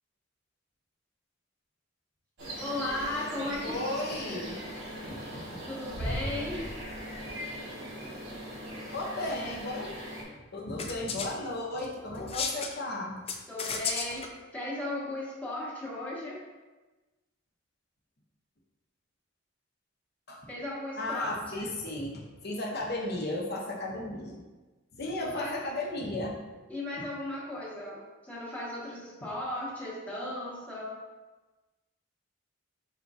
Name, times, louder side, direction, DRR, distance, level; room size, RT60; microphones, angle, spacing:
sound 1, 2.4-10.2, equal, 65° right, 1.2 m, -39 dB
voice 1, 2.5-3.8 5.7-6.7 13.5-16.4 20.5-21.7 25.2-25.6 26.7-31.0, left 1 dB, 10° left, -7 dB, 1.1 m, -36 dB
voice 2, 3.6-4.6 5.0-5.4 8.9-10.0 10.5-13.2 20.3-20.4 21.0-22.1 22.4-24.4 25.0-26.4, left 1 dB, 55° left, -2 dB, 0.8 m, -34 dB
sound 2, 10.8-11.3 12.1-12.7 13.3-14.3, left 5 dB, 30° left, 0.3 m, -33 dB
4.4 x 3.9 x 2.4 m, 1.2 s
head